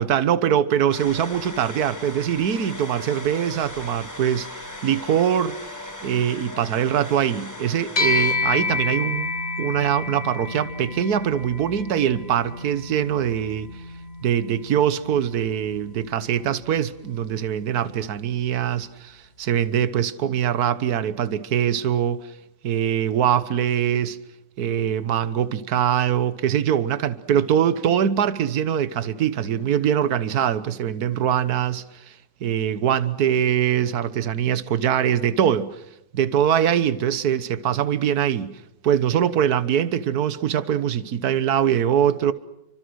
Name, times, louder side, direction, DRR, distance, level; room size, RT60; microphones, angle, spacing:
voice 1, 0.0-4.5 4.8-5.6 6.0-9.3 9.6-13.7 14.2-22.3 22.6-24.2 24.6-32.1 32.4-35.8 36.1-42.3, right 9 dB, 60° right, 1.5 m, -23 dB
sound 1, 0.9-8.4, left 1 dB, 10° left, 1.7 m, -38 dB
sound 2, 8.0-17.6, left 3 dB, 35° left, 2.0 m, -30 dB
29.5 x 25.0 x 6.4 m
omnidirectional pair, 2.0 m